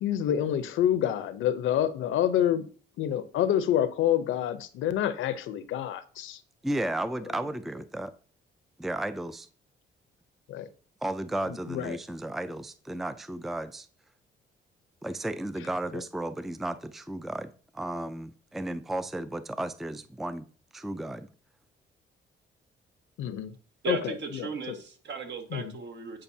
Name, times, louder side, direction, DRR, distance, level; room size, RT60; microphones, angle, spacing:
voice 1, 0.0-2.7 3.0-6.4 10.5-10.7 11.5-12.0 23.2-23.5 23.9-24.8 25.5-25.7, left 10 dB, 80° left, 12 dB, 0.7 m, -28 dB
voice 2, 6.6-8.1 8.8-9.5 11.0-13.9 15.0-17.5 17.7-20.5 20.7-21.3, right 1 dB, ahead, 12 dB, 0.4 m, -33 dB
voice 3, 23.8-26.2, right 5 dB, 60° right, 5 dB, 1.5 m, -36 dB
8.7 x 5.2 x 2.7 m, 0.41 s
cardioid pair, 90°, 20 cm